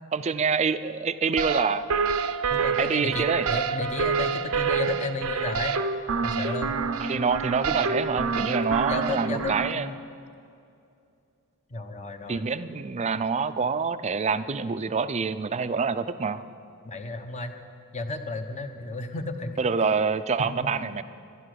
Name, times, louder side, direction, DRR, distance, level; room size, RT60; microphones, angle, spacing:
voice 1, 0.1-1.9 2.8-3.5 7.0-9.9 12.3-16.4 19.6-21.0, right 5 dB, 30° right, 13 dB, 0.4 m, -26 dB
sound 1, 1.4-9.7, right 5 dB, 75° right, 0.6 m, -27 dB
voice 2, 2.5-5.8 6.2-6.8 8.9-9.9 11.7-12.4 16.8-17.5 17.9-19.6 20.7-21.0, left 3 dB, 30° left, 6 dB, 0.8 m, -33 dB
12.5 x 11.5 x 6.4 m, 2.5 s
head